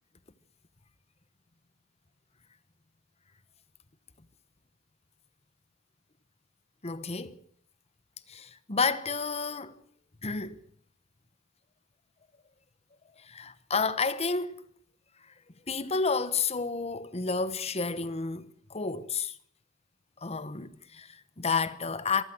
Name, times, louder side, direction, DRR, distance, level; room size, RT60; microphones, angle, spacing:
voice 1, 6.8-7.4 8.3-9.8 10.2-10.6 13.2-14.7 15.7-19.4 20.2-22.2, left 4 dB, 30° left, 1.1 m, -31 dB
24.5 x 15.0 x 7.9 m
head